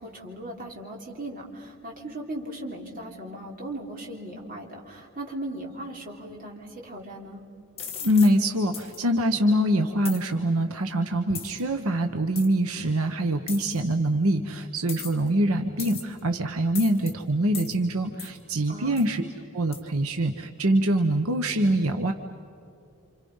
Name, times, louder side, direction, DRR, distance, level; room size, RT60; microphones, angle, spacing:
voice 1, 0.0-7.4 18.7-19.1, right 1 dB, 40° right, -1 dB, 3.6 m, -38 dB
sound 1, 7.8-8.3 8.7-9.0 10.0-10.2 11.3-11.6 12.4-12.5 13.5-13.8 14.9-15.3 15.8-16.2 16.7-17.1 17.5-17.8 18.2-18.4 19.0-19.1 19.7-19.8, left 7 dB, 25° left, 2.6 m, -37 dB
voice 2, 8.0-19.2 19.5-22.1, right 1 dB, 75° right, 6 dB, 1.2 m, -24 dB
29.5 x 27.0 x 5.6 m, 2.6 s
head